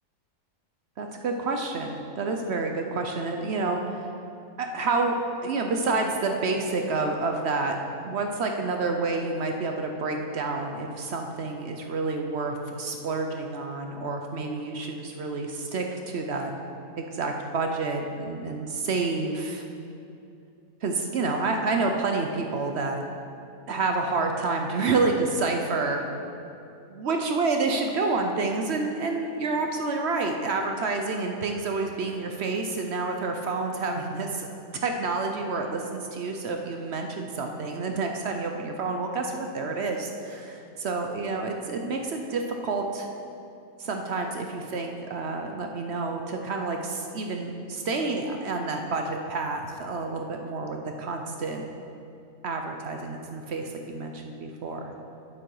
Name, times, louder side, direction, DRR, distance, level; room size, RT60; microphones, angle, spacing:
voice 1, 1.0-4.1 4.6-5.1 5.4-7.8 8.0-16.5 17.0-19.6 20.8-23.0 23.7-26.0 26.9-34.5 34.8-40.5 40.8-43.1 43.8-51.6 52.4-54.9, right 3 dB, 55° right, 3 dB, 0.9 m, -29 dB
9.2 x 7.6 x 4.7 m, 2.6 s
omnidirectional pair, 1.5 m